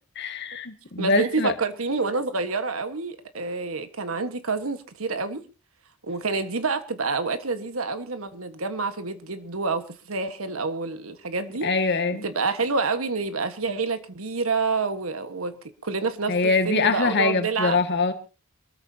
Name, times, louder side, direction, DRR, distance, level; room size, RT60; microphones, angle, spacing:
voice 1, 0.2-1.5 11.6-12.2 16.3-18.1, left 4 dB, 55° left, 2.0 m, -23 dB
voice 2, 1.0-5.4 6.0-11.7 12.1-17.8, right 4 dB, 75° right, 1.5 m, -28 dB
25.5 x 14.0 x 2.8 m
head